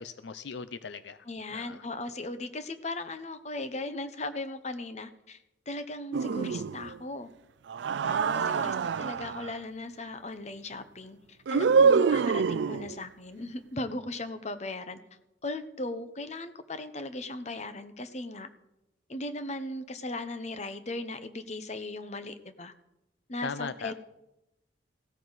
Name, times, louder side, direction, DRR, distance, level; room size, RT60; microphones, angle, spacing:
voice 1, 0.0-1.2 1.5-1.8 8.0-8.7 23.4-23.9, left 5 dB, 75° left, 13 dB, 0.5 m, -39 dB
voice 2, 1.2-5.4 5.7-7.3 8.3-15.0 15.4-18.5 19.1-22.7 23.3-23.9, left 2 dB, 40° left, 10 dB, 1.0 m, -37 dB
sound 1, 6.1-7.0 7.7-9.5 11.5-13.0, right 5 dB, 75° right, 0.4 m, -25 dB
16.5 x 13.5 x 4.1 m, 0.89 s
head